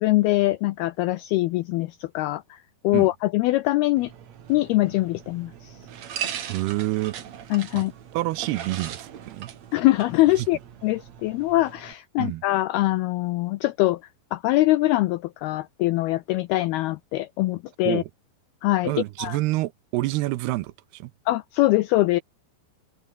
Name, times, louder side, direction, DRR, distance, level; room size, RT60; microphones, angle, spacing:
voice 1, 0.0-2.6 2.8-4.1 4.5-5.8 7.5-7.9 9.7-14.0 14.3-18.0 18.6-18.9 19.2-19.4 21.3-22.2, left 18 dB, 85° left, 2.2 m, -23 dB
sound 1, 4.0-11.9, right 9 dB, 50° right, 2.4 m, -39 dB
voice 2, 6.5-7.2 7.7-7.8 8.1-9.5 10.4-10.5 12.2-12.4 17.9-18.1 18.8-21.1, right 18 dB, 75° right, 2.6 m, -27 dB
open air
omnidirectional pair, 5.2 m